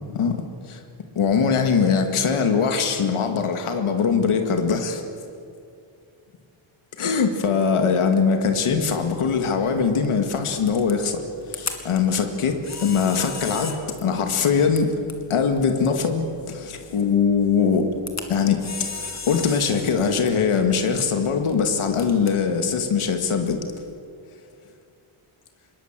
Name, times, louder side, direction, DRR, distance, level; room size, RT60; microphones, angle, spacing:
voice 1, 1.2-5.0 7.0-11.2 11.5-14.9 15.3-17.9 18.3-23.6, left 6 dB, 80° left, 5 dB, 2.3 m, -22 dB
Camera, 8.5-23.9, left 4 dB, 35° left, 2.3 m, -39 dB
26.0 x 21.5 x 7.6 m, 2.4 s
wide cardioid pair, 165°, 49 cm